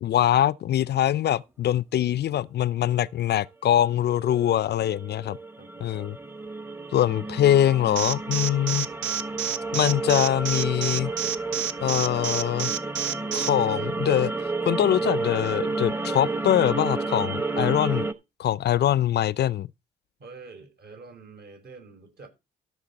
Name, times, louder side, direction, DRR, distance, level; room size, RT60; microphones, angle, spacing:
voice 1, 0.0-5.4 5.8-6.2 6.9-8.9 9.7-11.1 11.8-12.7 13.3-18.1 18.4-19.7, left 11 dB, 55° left, 0.5 m, -23 dB
sound 1, 3.0-3.1 4.1-18.1, right 3 dB, 10° right, 1.1 m, -31 dB
voice 2, 5.6-6.0 7.2-7.6 20.2-22.3, right 4 dB, 55° right, 5.3 m, -47 dB
Alarm, 8.0-13.5, right 9 dB, 75° right, 0.8 m, -28 dB
14.0 x 6.8 x 4.1 m
cardioid pair, 90°, 20 cm